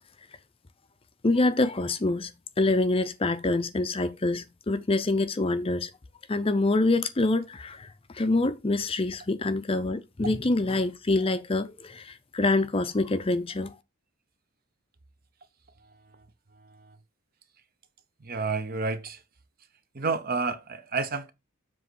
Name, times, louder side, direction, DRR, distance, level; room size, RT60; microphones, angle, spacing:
voice 1, 1.2-5.9 6.3-7.9 8.1-13.7, left 2 dB, 25° left, 0.5 m, -26 dB
voice 2, 18.2-19.2 19.9-21.3, right 4 dB, 45° right, 0.8 m, -29 dB
7.4 x 3.1 x 6.2 m
head